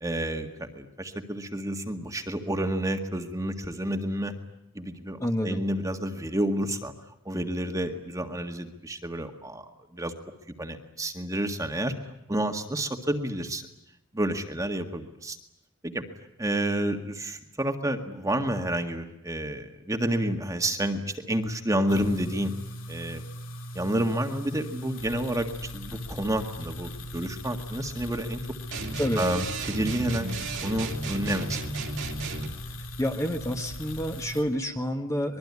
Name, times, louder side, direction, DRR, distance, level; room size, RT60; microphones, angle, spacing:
voice 1, 0.0-4.3 4.8-6.9 7.3-9.7 9.9-10.1 10.6-11.9 12.3-13.7 14.1-15.4 15.8-16.0 16.4-22.5 22.9-23.2 23.7-28.4 29.2-30.3 30.6-31.6, right 1 dB, 15° right, 5 dB, 1.8 m, -29 dB
voice 2, 5.2-5.6 29.0-29.3 33.0-35.4, equal, 15° left, 4 dB, 1.6 m, -28 dB
sound 1, 21.9-34.4, equal, 70° left, 3.1 m, -39 dB
sound 2, 28.7-32.5, right 3 dB, 65° right, 2.7 m, -34 dB
24.5 x 22.0 x 9.7 m, 0.85 s
head